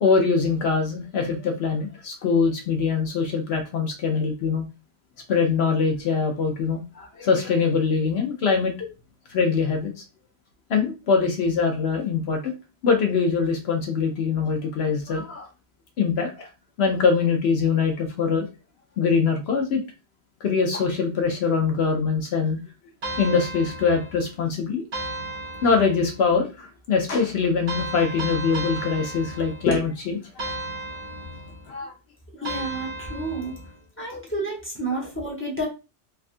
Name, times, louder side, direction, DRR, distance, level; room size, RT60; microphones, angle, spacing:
voice 1, 0.0-4.6 5.3-8.9 9.3-9.9 10.7-12.5 12.8-15.5 16.0-16.5 16.8-18.5 19.0-19.8 20.4-22.6 23.2-24.8 25.6-30.5 31.7-31.9, left 5 dB, 70° left, 4 dB, 0.8 m, -23 dB
sound 1, 23.0-24.3 24.9-26.2 27.7-29.9 30.4-31.7 32.4-33.7, right 2 dB, 50° right, 1.0 m, -34 dB
voice 2, 32.3-33.6 34.0-35.7, right 2 dB, 10° left, -2 dB, 0.9 m, -30 dB
3.4 x 2.3 x 2.5 m, 0.29 s
omnidirectional pair, 1.2 m